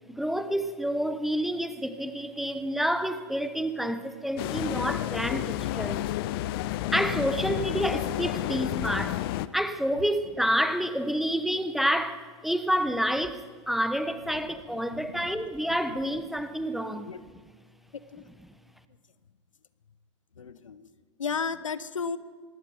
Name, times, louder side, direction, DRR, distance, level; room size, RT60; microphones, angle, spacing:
voice 1, 0.1-6.0 6.9-9.2 9.5-13.4 13.7-17.1, equal, ahead, 1.1 m, -28 dB
sound 1, 4.4-9.5, left 14 dB, 45° left, 0.8 m, -30 dB
voice 2, 14.3-16.0 16.9-17.2 17.9-18.3 20.4-20.9 21.2-22.2, left 5 dB, 75° left, 1.1 m, -36 dB
25.0 x 20.5 x 5.1 m
figure-of-eight pair, 100°, 17 cm